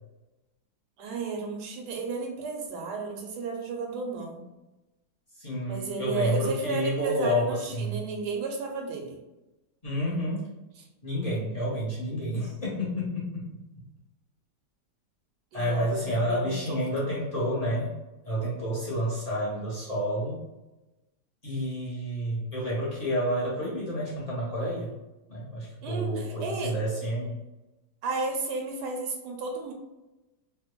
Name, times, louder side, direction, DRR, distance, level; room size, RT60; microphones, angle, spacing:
voice 1, 1.0-4.4 5.7-9.2 15.5-15.9 16.2-16.8 25.8-26.7 28.0-29.7, right 3 dB, 85° right, 2 dB, 1.2 m, -33 dB
voice 2, 5.4-8.0 9.8-10.5 11.0-13.5 15.5-18.0 18.2-20.4 21.4-25.0 25.3-27.4, equal, 35° left, -7 dB, 0.7 m, -29 dB
3.3 x 2.2 x 2.9 m, 1.0 s
omnidirectional pair, 1.8 m